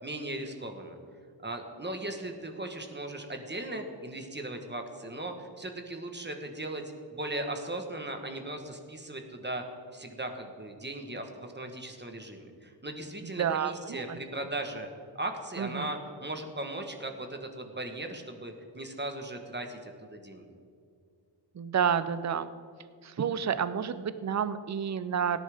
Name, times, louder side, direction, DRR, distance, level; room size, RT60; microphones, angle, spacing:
voice 1, 0.0-1.0 1.4-6.8 7.1-9.6 9.9-14.9 15.1-20.5, right 1 dB, 25° right, 4 dB, 1.3 m, -38 dB
voice 2, 13.2-14.2 15.6-15.9 21.5-22.5 23.0-25.4, right 7 dB, 40° right, 13 dB, 0.6 m, -30 dB
17.5 x 10.0 x 3.6 m, 2.3 s
wide cardioid pair, 95°, 43 cm